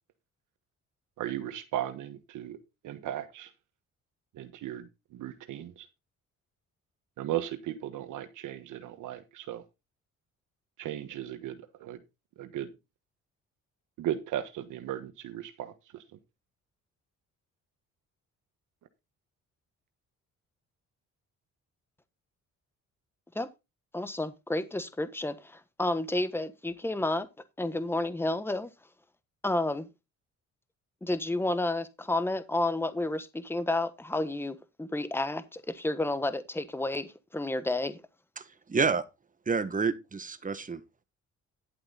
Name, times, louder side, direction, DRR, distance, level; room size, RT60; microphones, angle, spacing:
voice 1, 1.2-2.6 2.8-3.5 4.3-5.9 7.2-9.6 10.8-12.0 12.4-12.7 14.0-16.2, right 12 dB, 80° right, 1.4 m, -36 dB
voice 2, 23.9-27.3 27.6-28.7 29.4-29.9 31.0-38.0, left 2 dB, 10° left, 1.3 m, -31 dB
voice 3, 38.7-39.0 39.5-40.8, right 5 dB, 25° right, 1.4 m, -28 dB
11.5 x 7.9 x 4.0 m
cardioid pair, 90°, 30 cm